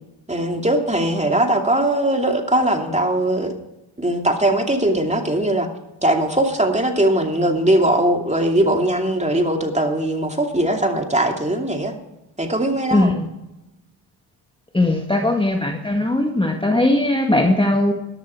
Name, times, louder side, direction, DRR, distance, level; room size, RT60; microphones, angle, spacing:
voice 1, 0.3-3.5 4.0-5.7 6.0-11.9 12.4-13.1, right 1 dB, 15° right, 3 dB, 2.7 m, -20 dB
voice 2, 12.9-13.3 14.7-17.9, left 1 dB, 10° left, 3 dB, 1.7 m, -19 dB
13.5 x 11.5 x 4.6 m, 0.96 s
supercardioid pair, 50°, 48 cm